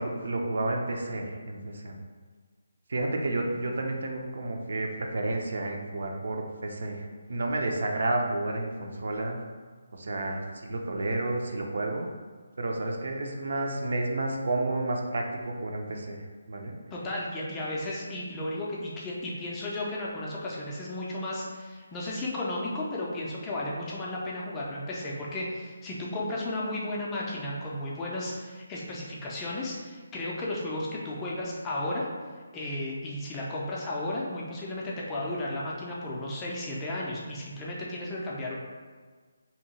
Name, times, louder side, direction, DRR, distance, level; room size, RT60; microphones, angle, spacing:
voice 1, 0.0-2.0 2.9-9.4 9.9-12.1 12.6-16.7, right 2 dB, 60° right, 2 dB, 0.4 m, -31 dB
voice 2, 16.9-32.1 32.5-38.5, left 1 dB, 10° left, -5 dB, 0.4 m, -34 dB
2.8 x 2.2 x 4.0 m, 1.5 s
hypercardioid pair, 170°, 0 cm